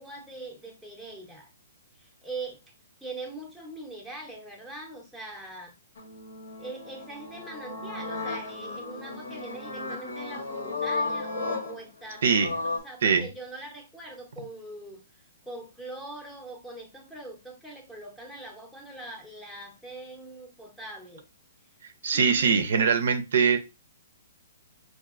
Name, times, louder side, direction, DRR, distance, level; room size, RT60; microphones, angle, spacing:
voice 1, 0.0-1.5 2.0-2.6 3.0-5.7 6.6-15.0 15.4-21.3 22.1-22.9, right 2 dB, ahead, 1 dB, 0.7 m, -42 dB
sound 1, 6.0-12.8, left 3 dB, 80° left, 1.1 m, -34 dB
voice 2, 12.2-12.5 13.0-13.3 22.0-23.6, right 6 dB, 65° right, 8 dB, 0.5 m, -22 dB
4.5 x 2.7 x 2.4 m, 0.26 s
hypercardioid pair, 160°, 0 cm